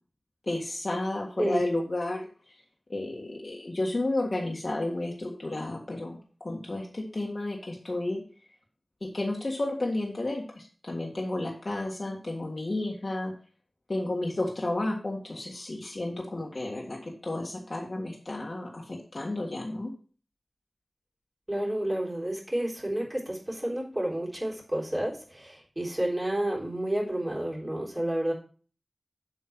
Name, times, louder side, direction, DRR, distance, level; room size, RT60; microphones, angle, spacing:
voice 1, 0.4-2.3 2.9-8.2 9.0-13.3 13.9-19.9, left 2 dB, 50° left, -1 dB, 1.7 m, -32 dB
voice 2, 21.5-28.3, right 1 dB, 20° right, -3 dB, 3.7 m, -30 dB
7.7 x 5.4 x 6.0 m, 0.40 s
wide cardioid pair, 65°, 0 cm